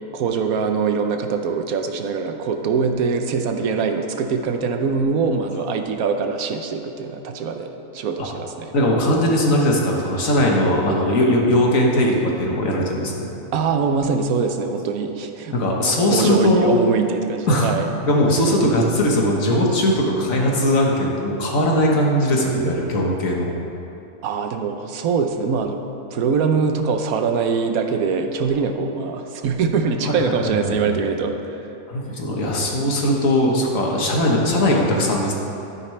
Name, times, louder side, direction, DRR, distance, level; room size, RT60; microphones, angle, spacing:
voice 1, 0.1-8.7 13.5-15.6 15.9-17.9 24.2-25.8 26.1-31.6, right 5 dB, 75° right, 6 dB, 1.2 m, -23 dB
voice 2, 8.7-13.3 15.5-16.7 17.5-23.5 30.0-30.9 31.9-35.3, left 1 dB, 65° left, -1 dB, 1.7 m, -19 dB
12.0 x 9.9 x 3.2 m, 2.9 s
omnidirectional pair, 1.5 m